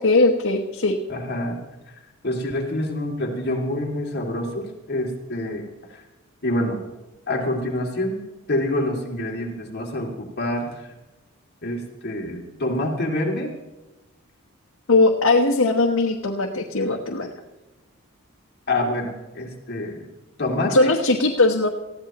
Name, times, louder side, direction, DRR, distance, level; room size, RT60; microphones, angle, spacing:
voice 1, 0.0-1.0 14.9-17.3 20.7-21.7, left 2 dB, 80° left, 0 dB, 1.2 m, -19 dB
voice 2, 1.1-1.6 1.9-5.7 5.9-6.0 6.4-6.8 7.3-8.2 8.5-10.9 11.6-13.5 18.7-20.1 20.4-21.0, left 1 dB, 50° left, 0 dB, 2.4 m, -27 dB
19.5 x 14.5 x 3.0 m, 1.1 s
head